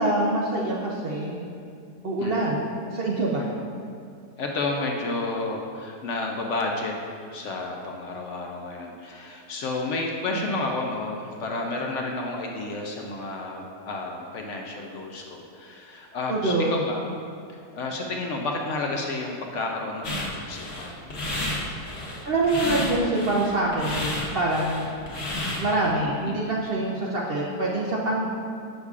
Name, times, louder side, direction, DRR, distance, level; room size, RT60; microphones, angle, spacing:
voice 1, 0.0-1.5 2.0-2.6 2.9-3.5 16.3-16.8 22.3-24.8 25.6-28.3, right 2 dB, 65° right, -3 dB, 0.5 m, -25 dB
voice 2, 2.2-2.5 4.4-6.9 7.3-17.0 17.5-21.0 26.2-26.5, left 2 dB, 65° left, 1 dB, 0.7 m, -31 dB
sound 1, 20.0-25.9, left 1 dB, 45° left, 1.2 m, -31 dB
8.0 x 6.4 x 2.4 m, 2.4 s
omnidirectional pair, 1.7 m